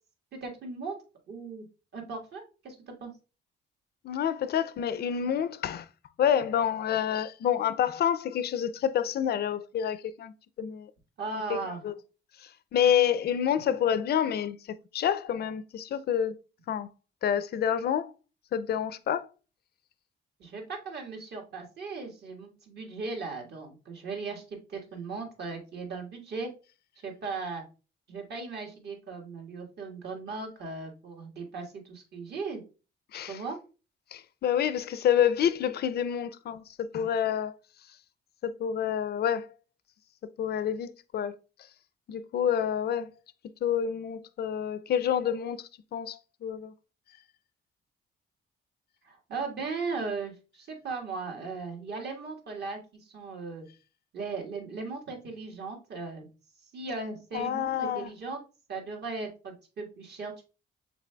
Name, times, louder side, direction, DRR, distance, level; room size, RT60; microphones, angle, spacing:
voice 1, 0.3-0.9 1.3-1.6 1.9-3.1 11.2-11.8 20.4-26.5 27.0-27.6 28.1-32.6 33.3-33.6 49.0-53.6 54.1-56.3 56.7-58.4 58.7-60.5, right 4 dB, 55° right, 1.5 m, -37 dB
voice 2, 4.0-5.9 6.2-10.9 11.5-11.6 11.8-11.9 12.4-16.4 16.7-16.9 17.2-18.1 18.5-19.3 33.1-33.4 34.1-37.6 38.4-39.5 40.2-41.3 42.1-43.1 43.6-46.7 57.3-58.1, left 9 dB, 55° left, 0.4 m, -28 dB
6.0 x 3.6 x 2.2 m
cardioid pair, 90°, 20 cm